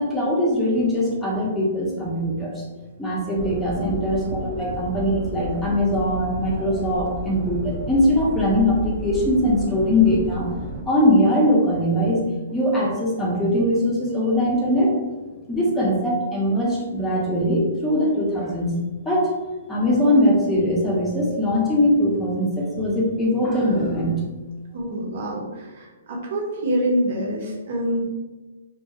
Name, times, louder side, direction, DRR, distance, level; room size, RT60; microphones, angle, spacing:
voice 1, 0.0-2.6 3.0-10.5 10.9-12.2 12.5-14.9 15.5-18.8 19.1-19.3 19.7-24.2, left 1 dB, 5° left, -5 dB, 0.6 m, -21 dB
sound 1, 3.4-10.8, right 2 dB, 40° right, 0.4 m, -32 dB
voice 2, 24.7-28.0, equal, 55° right, -2 dB, 0.8 m, -26 dB
2.3 x 2.2 x 2.9 m, 1.2 s
hypercardioid pair, 150°, 0 cm